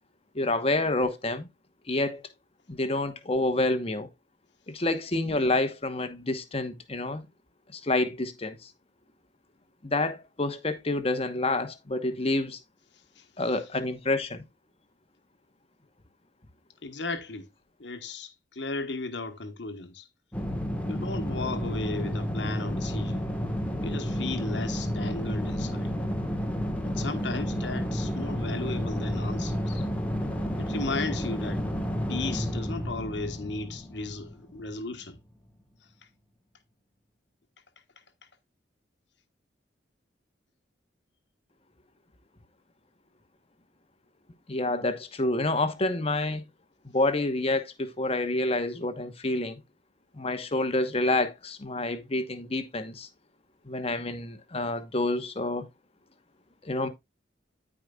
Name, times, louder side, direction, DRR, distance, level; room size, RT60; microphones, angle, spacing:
voice 1, 0.3-1.5 1.9-2.2 2.7-4.1 4.7-7.2 7.7-8.7 9.8-12.6 13.4-14.4 44.5-46.4 46.8-49.6 50.1-53.1 53.7-55.7 56.6-56.9, left 2 dB, 35° left, 1.1 m, -28 dB
voice 2, 16.8-17.5 17.8-20.1 20.9-23.3 23.8-25.9 26.8-29.9 30.6-31.6 32.1-35.2, left 3 dB, 75° left, 1.3 m, -35 dB
sound 1, 20.3-34.7, equal, 10° left, 1.4 m, -31 dB
14.5 x 5.0 x 2.4 m
head